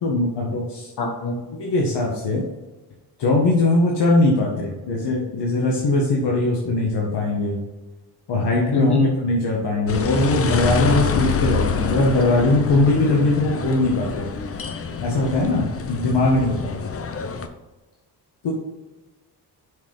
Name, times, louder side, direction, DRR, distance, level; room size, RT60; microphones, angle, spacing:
voice 1, 0.0-0.9 1.6-2.4 3.2-7.6 8.3-8.9 9.2-14.3 15.0-16.8 18.4-18.5, left 2 dB, 85° left, -2 dB, 1.6 m, -20 dB
voice 2, 1.0-1.4 8.7-9.1, left 3 dB, 65° left, 0 dB, 2.2 m, -21 dB
sound 1, 9.9-17.5, left 5 dB, 35° left, 0.7 m, -26 dB
6.4 x 5.8 x 5.5 m, 1.2 s
wide cardioid pair, 140°, 40 cm